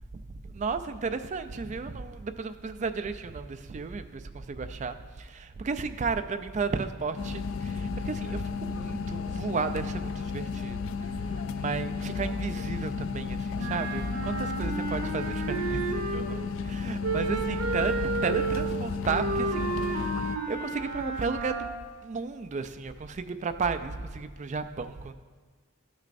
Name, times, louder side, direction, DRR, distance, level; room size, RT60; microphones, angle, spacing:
voice 1, 0.3-21.6 22.0-25.1, right 4 dB, 35° right, 10 dB, 0.3 m, -34 dB
sound 1, 7.2-20.4, left 5 dB, 65° left, 0.3 m, -33 dB
Wind instrument woodwind instrument, 13.5-16.5 17.0-21.9, right 4 dB, 90° right, 0.8 m, -32 dB
12.5 x 6.3 x 2.6 m, 1.5 s
head